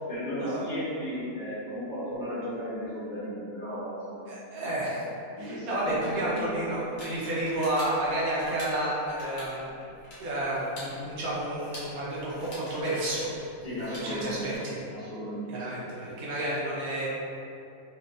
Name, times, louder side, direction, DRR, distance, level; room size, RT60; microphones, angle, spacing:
voice 1, 0.1-4.3 5.3-6.7 13.6-14.6 14.9-15.8, equal, 30° left, -12 dB, 1.4 m, -35 dB
voice 2, 4.3-5.0 5.4-9.8 10.2-13.3 14.0-14.8 15.5-17.1, right 1 dB, 70° right, -6 dB, 1.3 m, -31 dB
sound 1, 5.9-14.6, left 1 dB, 80° left, 1.6 m, -46 dB
4.4 x 2.4 x 2.6 m, 2.7 s
omnidirectional pair, 1.6 m